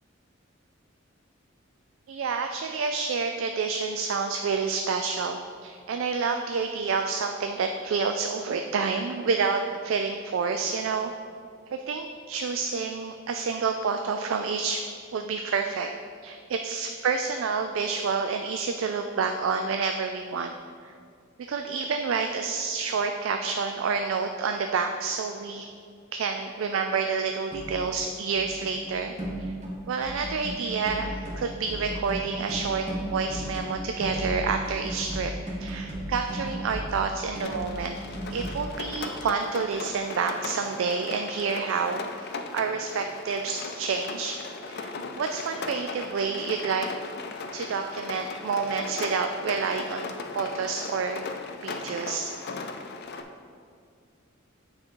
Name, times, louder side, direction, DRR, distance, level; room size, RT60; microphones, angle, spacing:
voice 1, 2.1-11.1 11.7-14.8 15.1-15.9 16.2-20.5 20.8-20.9 21.5-25.7 26.1-29.1 29.4-29.5 29.9-32.8 33.1-35.3 35.6-38.0 38.3-42.3 42.5-44.4 44.7-46.9 47.5-51.2 51.6-52.3, right 5 dB, 80° right, 5 dB, 0.4 m, -29 dB
sound 1, 27.5-28.0 28.4-38.6, equal, 35° right, 1.3 m, -35 dB
Rain, 37.4-53.2, left 3 dB, 55° left, 0.5 m, -38 dB
8.7 x 3.8 x 4.5 m, 2.2 s
head